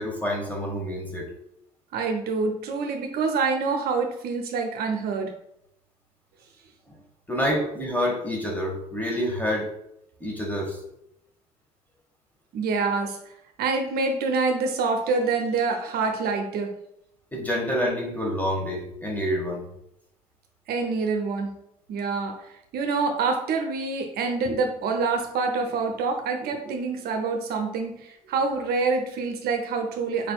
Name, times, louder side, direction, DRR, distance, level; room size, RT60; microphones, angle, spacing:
voice 1, 0.0-1.3 6.9-7.0 7.3-9.7 10.2-10.8 17.3-19.7, equal, 10° left, 0 dB, 1.3 m, -27 dB
voice 2, 1.9-5.3 12.5-13.2 13.6-16.7 20.7-21.6 21.9-30.3, right 4 dB, 55° right, 4 dB, 0.7 m, -26 dB
4.7 x 4.0 x 2.3 m, 0.79 s
hypercardioid pair, 55°, 19 cm